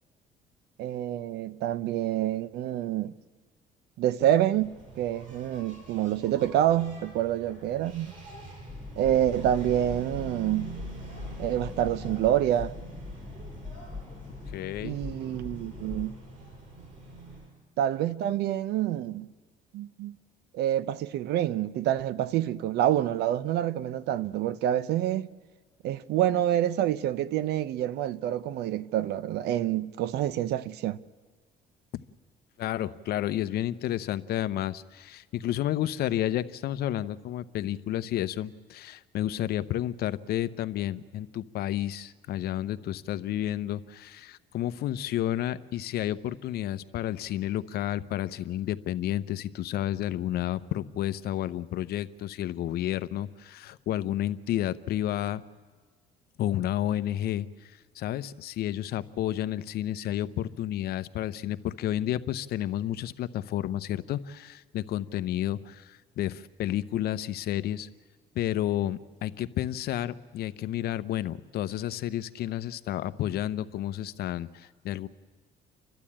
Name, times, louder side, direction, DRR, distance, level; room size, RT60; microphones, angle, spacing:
voice 1, 0.8-3.1 4.0-8.1 8.9-10.7 11.4-12.7 14.8-16.1 17.8-19.3 19.7-20.2 20.5-25.3 25.8-31.0, right 12 dB, 75° right, 0.7 m, -27 dB
Engine, 4.5-17.5, right 3 dB, 50° right, 7.9 m, -45 dB
sound 1, 8.7-16.1, left 4 dB, 10° left, 1.4 m, -41 dB
voice 2, 14.5-15.0 31.9-32.0 32.6-55.4 56.4-67.9 68.3-75.1, left 12 dB, 70° left, 0.8 m, -31 dB
30.0 x 12.0 x 8.7 m
cardioid pair, 110°, 17 cm